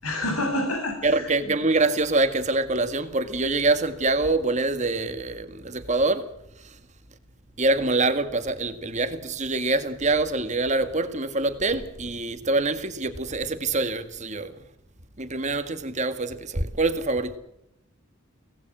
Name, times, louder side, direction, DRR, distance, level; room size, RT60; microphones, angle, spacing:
voice 1, 0.0-1.5, left 1 dB, 90° left, 7.8 m, -28 dB
voice 2, 1.0-6.3 7.6-14.5 15.2-17.3, right 2 dB, 35° right, 1.9 m, -25 dB
24.5 x 19.0 x 6.3 m
head